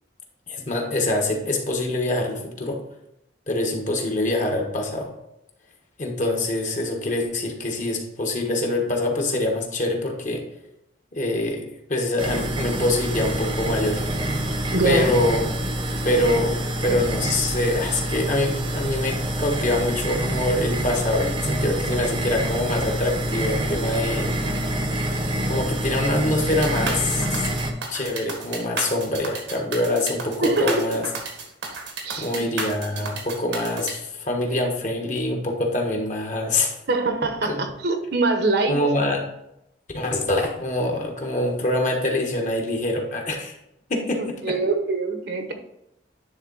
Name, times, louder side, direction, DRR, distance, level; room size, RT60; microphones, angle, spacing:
voice 1, 0.5-2.8 3.5-5.1 6.0-10.4 11.1-14.0 14.8-15.4 16.0-24.3 25.5-27.4 27.9-31.1 32.2-36.7 37.4-37.7 38.7-39.2 39.9-43.6 43.9-44.5, left 1 dB, 45° left, 2 dB, 1.3 m, -25 dB
sound 1, 12.2-27.7, right 1 dB, 30° right, 0.8 m, -26 dB
voice 2, 14.7-15.1 30.4-30.9 32.0-32.4 36.9-38.7 44.4-45.5, right 3 dB, 65° right, 5 dB, 1.0 m, -23 dB
sound 2, 26.4-33.9, right 4 dB, 90° right, 1.6 m, -32 dB
10.0 x 3.7 x 4.0 m, 0.81 s
head